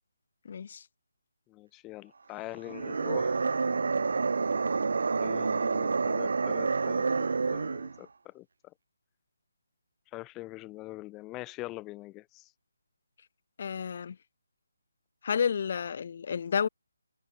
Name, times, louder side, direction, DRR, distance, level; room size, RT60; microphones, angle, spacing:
voice 1, 0.4-0.8 13.6-14.2 15.2-16.7, left 7 dB, 45° left, 0.9 m, -30 dB
voice 2, 1.5-4.1 5.2-8.7 10.1-12.5, left 19 dB, 15° left, 6.9 m, -44 dB
sound 1, 2.6-8.0, right 4 dB, 65° right, 0.4 m, -28 dB
figure-of-eight pair, 155°, 0 cm